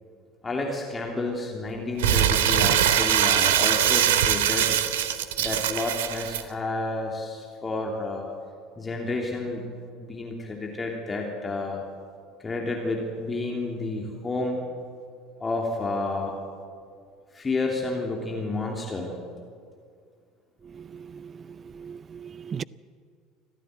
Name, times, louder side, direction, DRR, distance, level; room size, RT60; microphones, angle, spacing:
voice 1, 0.4-4.8 5.4-8.3 8.8-9.6 10.0-11.8 12.4-14.6 15.4-16.3 17.3-19.1, left 2 dB, 20° left, 3.1 m, -30 dB
Crumpling crinkling, 2.0-6.4, right 10 dB, 65° right, 1.0 m, -22 dB
voice 2, 20.8-21.3 21.8-22.6, right 7 dB, 30° right, 0.5 m, -38 dB
25.5 x 15.0 x 8.0 m
figure-of-eight pair, 65°, 0 cm